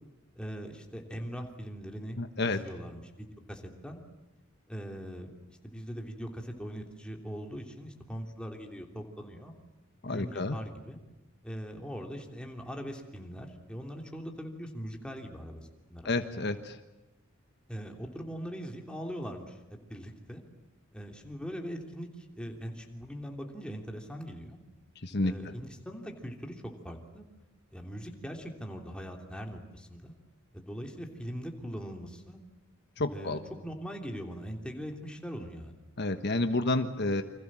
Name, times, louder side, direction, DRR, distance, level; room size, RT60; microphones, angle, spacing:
voice 1, 0.3-4.0 4.7-9.5 10.0-11.0 11.4-16.1 17.7-20.4 20.9-24.6 25.2-27.3 27.7-30.2 30.5-32.4 33.1-35.7, equal, 5° left, 2 dB, 3.2 m, -41 dB
voice 2, 2.2-2.6 10.0-10.6 16.0-16.8 25.0-25.3 33.0-33.4 36.0-37.2, left 2 dB, 55° left, 8 dB, 1.3 m, -30 dB
29.5 x 26.0 x 7.6 m, 1.0 s
head